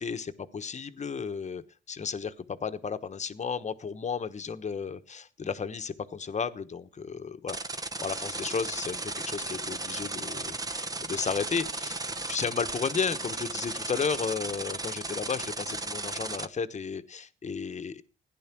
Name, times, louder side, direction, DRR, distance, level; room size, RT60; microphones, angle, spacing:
voice 1, 0.0-18.0, left 6 dB, 35° left, 10 dB, 1.2 m, -34 dB
sound 1, 7.5-16.4, right 2 dB, 20° right, 1.0 m, -35 dB
16.0 x 10.5 x 6.1 m, 0.40 s
cardioid pair, 90°, 20 cm